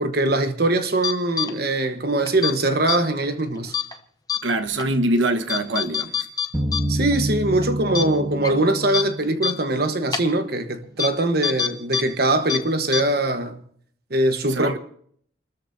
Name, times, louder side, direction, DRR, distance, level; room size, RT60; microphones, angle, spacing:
voice 1, 0.0-3.7 6.9-13.6 14.1-14.8, right 2 dB, 50° right, 1.2 m, -22 dB
sound 1, 1.0-1.5 2.3-2.5 2.9-3.0 3.7-3.9 4.3-4.4 4.8-4.9 5.5-6.8 7.1-7.2 7.6-7.7 7.9-8.0 8.4-8.5 8.9-9.0 9.4-9.5 10.1-10.2 11.0-11.1 11.4-12.0 12.3-12.6 12.9-13.0, left 8 dB, 20° left, 0.8 m, -24 dB
voice 2, 4.4-6.3 14.5-14.8, right 1 dB, 75° right, 1.3 m, -23 dB
sound 2, 6.5-10.3, right 1 dB, 15° right, 1.7 m, -28 dB
29.0 x 13.5 x 2.7 m
head